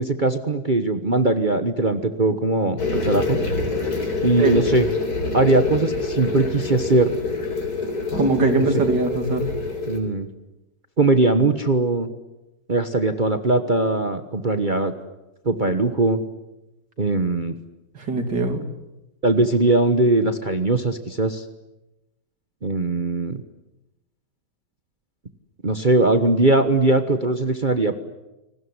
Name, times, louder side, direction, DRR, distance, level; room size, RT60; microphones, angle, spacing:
voice 1, 0.0-3.4 4.2-4.9 5.3-7.1 8.6-8.7 9.9-10.3 11.0-12.1 12.7-14.9 15.4-16.2 17.0-17.5 19.2-21.4 22.6-23.4 25.6-27.9, right 2 dB, 30° right, 8 dB, 1.2 m, -20 dB
sound 1, 2.8-10.0, left 3 dB, 60° left, 4.5 m, -26 dB
voice 2, 8.2-9.5 18.0-18.6, right 3 dB, 75° right, 7 dB, 3.5 m, -21 dB
29.0 x 20.0 x 9.8 m, 0.97 s
omnidirectional pair, 1.9 m